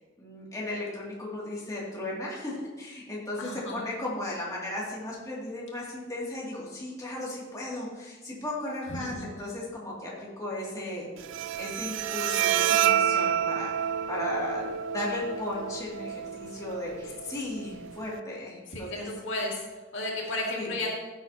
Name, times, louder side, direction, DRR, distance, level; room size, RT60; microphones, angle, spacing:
voice 1, 0.2-11.1 11.6-19.1 20.5-20.7, left 1 dB, 15° left, -6 dB, 2.5 m, -36 dB
voice 2, 3.4-3.8 8.9-9.3 18.7-19.7 19.9-21.0, left 2 dB, 65° left, -3 dB, 2.3 m, -33 dB
Bowed string instrument, 11.2-18.2, right 9 dB, 65° right, 0.4 m, -29 dB
14.5 x 8.2 x 2.9 m, 1.2 s
head